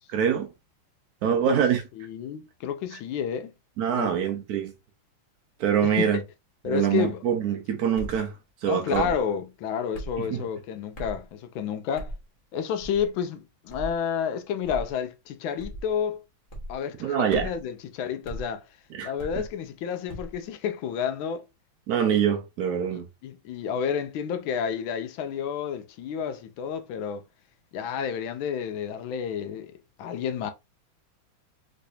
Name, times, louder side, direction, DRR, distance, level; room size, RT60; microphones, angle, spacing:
voice 1, 0.1-0.5 1.2-1.8 3.8-4.7 5.6-6.2 6.7-8.3 8.6-9.1 10.2-10.4 17.0-17.5 18.9-19.1 21.9-23.1, right 8 dB, 85° right, 0.8 m, -24 dB
voice 2, 2.0-3.5 3.9-4.1 5.8-6.2 6.6-7.2 8.7-12.1 12.5-16.2 16.7-18.6 19.0-21.4 22.9-27.2 27.7-30.5, left 7 dB, 80° left, 1.3 m, -30 dB
sound 1, 8.0-8.2 8.9-9.2 9.9-10.2 10.9-11.2 12.0-12.2 12.8-13.1 13.7-14.0 14.6-14.9 15.6-15.9 16.5-16.8 17.3-17.6 18.2-18.5 19.2-19.5 20.1-20.4, right 1 dB, 35° left, 0.8 m, -37 dB
3.3 x 3.1 x 2.7 m
omnidirectional pair, 2.2 m